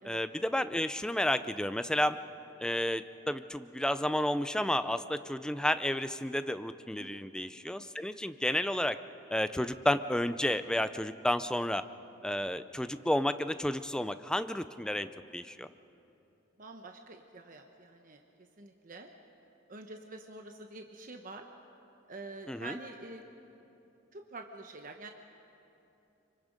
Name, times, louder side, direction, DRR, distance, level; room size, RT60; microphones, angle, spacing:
voice 1, 0.0-2.2 2.6-9.0 9.3-11.8 12.2-15.7 22.5-22.8, left 1 dB, 5° left, 11 dB, 0.5 m, -31 dB
voice 2, 16.6-18.2 18.6-19.1 19.7-21.4 22.1-23.3 24.1-25.1, right 2 dB, 45° right, 4 dB, 1.0 m, -46 dB
25.5 x 24.5 x 5.2 m, 2.9 s
head